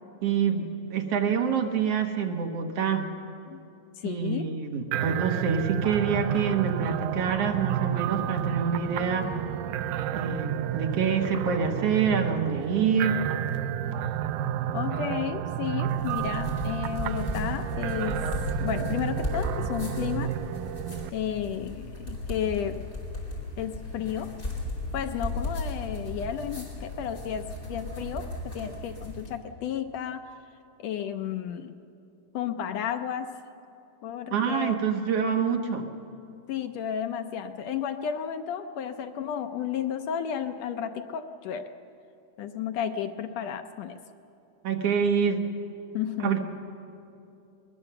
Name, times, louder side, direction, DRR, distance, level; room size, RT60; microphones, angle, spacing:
voice 1, 0.2-3.1 4.0-9.3 10.1-13.2 34.3-35.9 44.6-45.4 46.2-46.4, right 6 dB, 60° right, 4 dB, 2.0 m, -26 dB
voice 2, 3.9-4.5 14.7-18.3 18.6-20.3 21.1-22.9 23.6-24.3 24.9-30.2 30.8-31.8 32.3-33.3 34.0-34.8 36.5-41.7 42.4-44.0 45.9-46.4, left 9 dB, 75° left, 6 dB, 1.6 m, -32 dB
sound 1, 4.9-21.1, right 10 dB, 80° right, 2.0 m, -31 dB
sound 2, 15.9-29.3, left 2 dB, 15° left, 4.3 m, -36 dB
22.0 x 20.5 x 6.8 m, 2.7 s
omnidirectional pair, 3.7 m